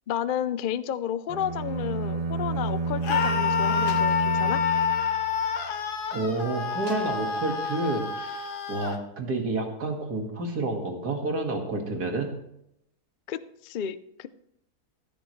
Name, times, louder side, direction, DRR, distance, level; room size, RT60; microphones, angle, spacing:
voice 1, 0.1-4.6 13.3-14.3, left 9 dB, 70° left, 13 dB, 0.4 m, -32 dB
sound 1, 1.3-5.7, right 3 dB, 25° right, 1.2 m, -30 dB
Screaming, 3.0-9.0, left 7 dB, 90° left, 1.8 m, -27 dB
Slam, 3.8-6.2 6.8-8.1, left 2 dB, 25° left, 2.1 m, -50 dB
voice 2, 6.1-12.3, right 2 dB, 80° right, 3 dB, 2.4 m, -29 dB
15.5 x 13.0 x 3.2 m, 0.78 s
omnidirectional pair, 1.7 m